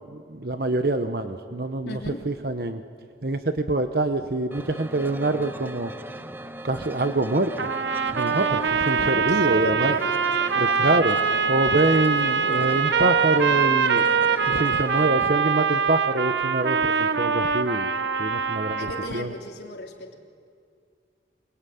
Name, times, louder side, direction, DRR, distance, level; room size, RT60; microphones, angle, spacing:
voice 1, 0.1-2.0 2.2-2.8 3.2-5.9 6.6-7.7 8.1-9.9 10.6-11.2 11.5-14.1 14.5-17.9 18.2-19.3, right 2 dB, 60° right, 8 dB, 1.0 m, -25 dB
voice 2, 1.8-2.2 8.9-10.3 18.8-20.2, left 1 dB, 70° left, 1 dB, 3.4 m, -35 dB
sound 1, 4.5-15.3, right 1 dB, 10° right, 0.7 m, -39 dB
sound 2, 7.6-19.3, right 6 dB, 85° right, 1.1 m, -23 dB
26.0 x 22.0 x 9.4 m, 2.2 s
head